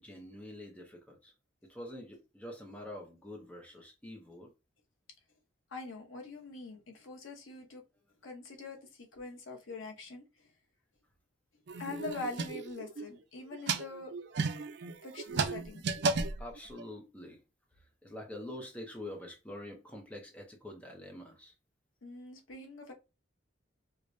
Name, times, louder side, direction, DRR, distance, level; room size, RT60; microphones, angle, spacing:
voice 1, 0.0-1.3 1.6-4.5 16.4-17.4 17.7-21.5, left 1 dB, 5° left, 0.6 m, -46 dB
voice 2, 5.7-7.8 8.2-10.2 11.8-14.1 15.0-15.8 22.0-22.9, left 3 dB, 85° left, 0.9 m, -44 dB
sound 1, 11.7-13.1 13.5-16.9, right 4 dB, 55° right, 0.4 m, -34 dB
4.7 x 2.1 x 2.6 m
head